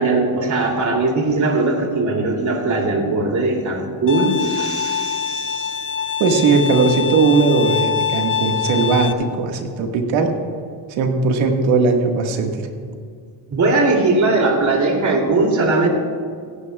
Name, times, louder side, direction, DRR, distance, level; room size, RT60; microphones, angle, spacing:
voice 1, 0.0-5.7 13.5-15.9, right 2 dB, 40° right, 1 dB, 2.9 m, -19 dB
Bowed string instrument, 4.1-9.1, left 7 dB, 25° left, 0.7 m, -24 dB
voice 2, 6.2-10.3 11.0-12.7, right 4 dB, 80° right, 3 dB, 1.9 m, -18 dB
17.5 x 16.0 x 2.4 m, 2.1 s
cardioid pair, 110°, 45 cm